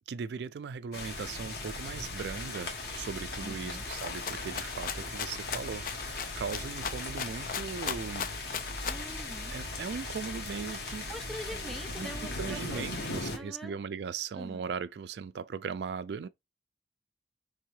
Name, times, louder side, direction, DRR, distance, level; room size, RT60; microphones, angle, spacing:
voice 1, 0.1-8.3 9.5-11.1 11.5-11.6 12.0-12.1 12.4-16.3, right 6 dB, 70° right, 0.3 m, -38 dB
sound 1, 0.9-13.4, left 2 dB, 65° left, 1.4 m, -38 dB
voice 2, 3.4-3.8 8.9-9.6 11.1-13.8 14.3-14.6, equal, ahead, 0.5 m, -44 dB
Rattle (instrument), 3.9-9.1, left 7 dB, 50° left, 0.4 m, -38 dB
4.6 x 3.5 x 3.0 m
head